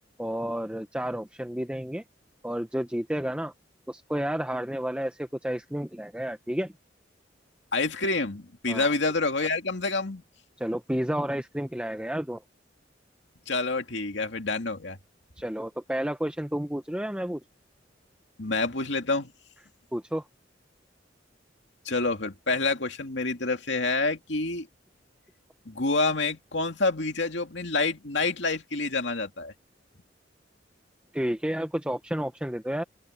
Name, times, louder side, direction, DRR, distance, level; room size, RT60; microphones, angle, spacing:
voice 1, 0.2-2.0 2.4-3.5 3.9-6.7 8.7-8.9 10.6-12.4 15.4-17.4 19.9-20.2 31.1-32.8, equal, 5° right, 0.9 m, -31 dB
voice 2, 7.7-10.2 13.5-15.0 18.4-19.3 21.9-24.7 25.7-29.5, left 3 dB, 70° left, 2.6 m, -27 dB
open air
head